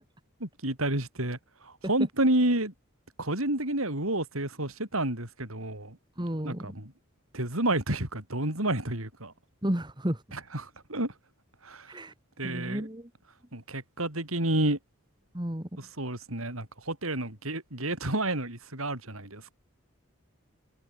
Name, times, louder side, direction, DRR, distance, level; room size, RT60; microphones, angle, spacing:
voice 1, 0.4-2.7 3.2-6.0 6.4-6.9 7.3-9.3 10.3-11.1 11.6-11.9 12.4-12.9 13.5-14.8 15.8-19.4, right 1 dB, 85° right, 7.0 m, -30 dB
voice 2, 6.2-6.7 9.6-10.2 11.9-12.1 12.4-13.1 15.3-15.7, equal, 20° right, 1.9 m, -32 dB
head